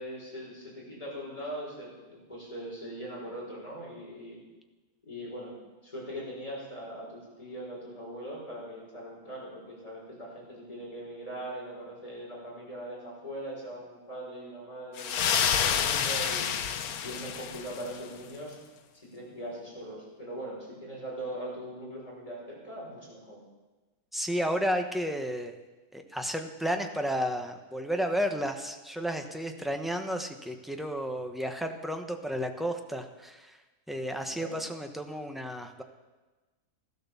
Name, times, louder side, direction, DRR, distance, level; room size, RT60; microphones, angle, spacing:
voice 1, 0.0-4.4 5.0-5.5 5.8-16.5 17.0-18.6 18.9-23.4 34.3-34.6, right 1 dB, 20° left, -4 dB, 6.1 m, -41 dB
sound 1, 15.0-18.0, left 8 dB, 75° left, 1.3 m, -28 dB
voice 2, 24.1-25.5 25.9-33.6 33.9-35.8, equal, ahead, 4 dB, 0.9 m, -32 dB
14.5 x 12.5 x 7.1 m, 1.2 s
omnidirectional pair, 1.6 m